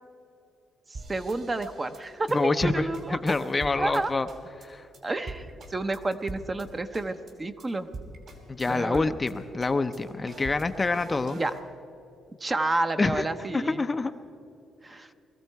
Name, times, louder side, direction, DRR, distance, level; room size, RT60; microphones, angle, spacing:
voice 1, 0.9-3.2 3.8-4.1 5.0-7.9 8.6-9.1 11.3-11.5 12.4-13.8 14.8-15.1, right 2 dB, 25° right, 9 dB, 0.8 m, -30 dB
sound 1, 0.9-4.0 4.3-4.7 4.9-5.0 5.3-6.7 6.9-7.3 7.6-7.7 7.9-9.3 9.6-11.6, right 3 dB, 60° right, 3.1 m, -42 dB
voice 2, 2.3-2.9 3.2-4.3 4.6-4.9 8.5-11.4 13.0-14.1, left 3 dB, 25° left, 9 dB, 0.5 m, -26 dB
20.5 x 14.5 x 4.6 m, 2.8 s
cardioid pair, 90°, 0 cm